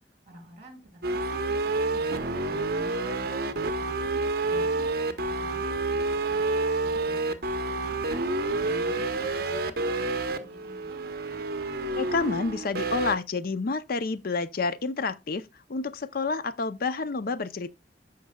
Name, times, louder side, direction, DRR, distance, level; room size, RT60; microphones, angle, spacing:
voice 1, 0.0-8.2 8.6-11.1, right 1 dB, 35° right, 3.1 m, -50 dB
sound 1, 1.0-13.2, right 2 dB, 55° right, 0.9 m, -29 dB
voice 2, 11.9-17.7, left 4 dB, 55° left, 0.5 m, -29 dB
14.5 x 5.3 x 2.2 m
head